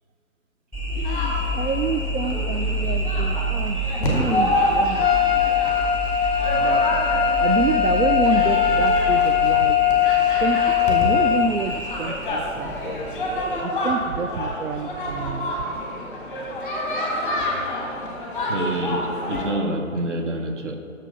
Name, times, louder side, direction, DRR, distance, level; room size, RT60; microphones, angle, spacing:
sound 1, 0.7-13.6, right 1 dB, 10° right, 1.5 m, -29 dB
voice 1, 0.9-5.4 6.6-6.8 7.4-10.1 10.4-10.6 10.8-13.0 13.6-15.5, right 5 dB, 75° right, 7 dB, 0.5 m, -28 dB
sound 2, 1.0-19.5, left 1 dB, 5° left, 0.9 m, -28 dB
Trumpet, 5.0-11.5, left 9 dB, 50° left, 0.5 m, -20 dB
voice 2, 18.5-20.8, right 1 dB, 60° right, 4 dB, 1.1 m, -27 dB
7.3 x 6.4 x 5.3 m, 2.7 s
figure-of-eight pair, 135°, 41 cm